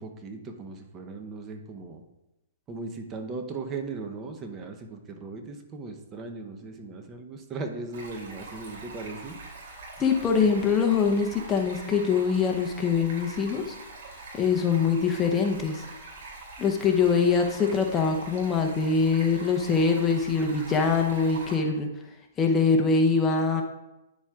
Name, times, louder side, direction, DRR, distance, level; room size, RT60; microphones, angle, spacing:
voice 1, 0.0-2.0 2.7-9.4, right 3 dB, 20° right, 4 dB, 0.7 m, -38 dB
Stream, 7.9-21.6, right 3 dB, 60° right, 2.8 m, -44 dB
voice 2, 10.0-13.7 14.3-15.9 16.6-21.9 22.4-23.6, left 5 dB, 20° left, 3 dB, 0.7 m, -23 dB
10.0 x 7.2 x 2.4 m, 0.95 s
hypercardioid pair, 145°, 0 cm